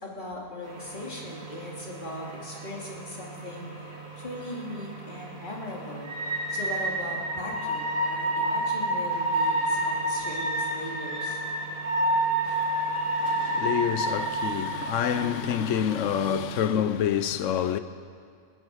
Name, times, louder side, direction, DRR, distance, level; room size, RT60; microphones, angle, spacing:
voice 1, 0.0-3.9 4.2-6.1 6.5-11.4, left 1 dB, 35° left, 2.8 m, -39 dB
sound 1, 0.6-16.6, right 1 dB, 70° right, 2.9 m, -30 dB
voice 2, 12.5-17.8, left 9 dB, 65° left, 1.0 m, -28 dB
18.5 x 10.0 x 6.4 m
omnidirectional pair, 1.5 m